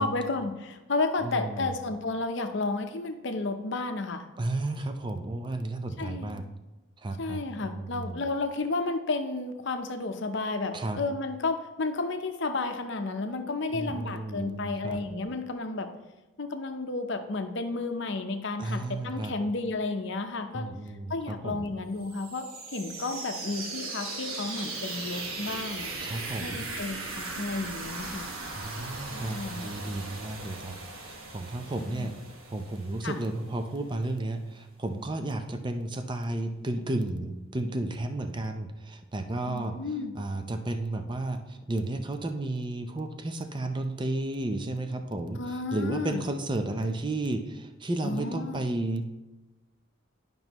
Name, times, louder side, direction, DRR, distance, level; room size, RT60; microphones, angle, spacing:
voice 1, 0.0-4.3 6.0-6.4 7.2-15.9 16.4-20.7 21.1-22.5 22.7-25.9 26.4-28.3 29.1-29.6 31.8-32.1 33.0-33.2 39.5-40.1 45.4-46.2 48.0-48.6, left 3 dB, 60° left, 7 dB, 0.7 m, -32 dB
voice 2, 1.2-1.7 4.4-6.4 7.0-8.2 10.7-11.0 13.7-15.0 18.6-19.3 20.5-21.7 26.0-26.7 28.6-32.1 32.5-39.8 40.1-49.0, right 2 dB, 20° right, 7 dB, 0.5 m, -33 dB
sound 1, 22.0-33.7, right 3 dB, 80° right, 1.2 m, -38 dB
11.0 x 5.3 x 3.0 m, 1.1 s
head